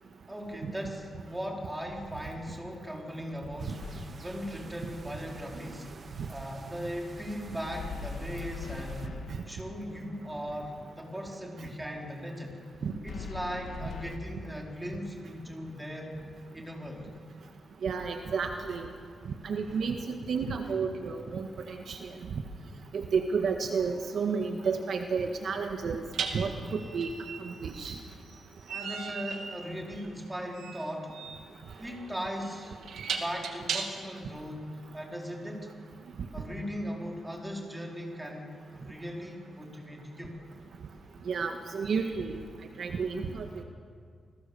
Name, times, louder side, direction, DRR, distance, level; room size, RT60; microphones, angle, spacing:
voice 1, 0.3-3.8 4.1-5.9 6.3-12.6 13.0-16.2 16.5-17.1 28.7-31.2 31.8-32.8 33.2-35.7 36.3-40.4, equal, 10° right, -1 dB, 4.4 m, -38 dB
sound 1, 3.6-9.1, right 4 dB, 35° right, 1.6 m, -49 dB
sound 2, 3.8-4.4 7.6-9.7 13.1-14.2, left 5 dB, 70° left, 1.8 m, -41 dB
voice 2, 17.8-18.9 19.4-22.1 22.9-26.0 26.3-27.1 27.4-28.0 41.3-42.4 42.8-43.6, right 5 dB, 60° right, 4 dB, 1.7 m, -31 dB
sound 3, 23.7-23.9 26.1-34.2, right 6 dB, 85° right, 2.5 m, -38 dB
28.5 x 21.0 x 7.2 m, 2.1 s
wide cardioid pair, 135°, 0 cm